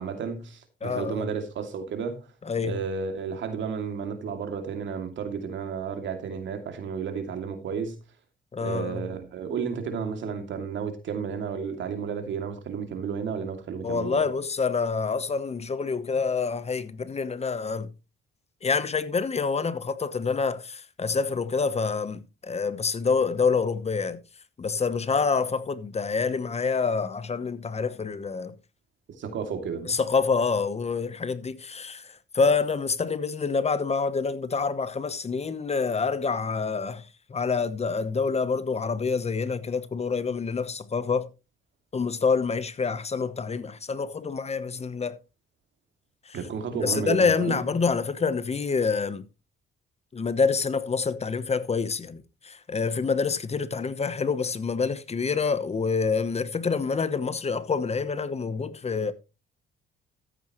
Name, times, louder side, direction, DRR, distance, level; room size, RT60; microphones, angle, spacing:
voice 1, 0.0-2.2 2.6-8.0 8.6-14.2 29.2-29.9 46.3-47.7, right 6 dB, 70° right, 2.6 m, -32 dB
voice 2, 0.8-1.3 2.5-2.8 8.5-9.0 13.8-17.9 18.6-24.2 24.6-28.5 29.9-32.1 32.3-37.0 37.3-41.3 41.9-45.2 46.3-46.4 46.7-49.2 50.1-59.1, left 5 dB, 30° left, 1.0 m, -27 dB
13.5 x 8.7 x 3.1 m
cardioid pair, 90°, 20 cm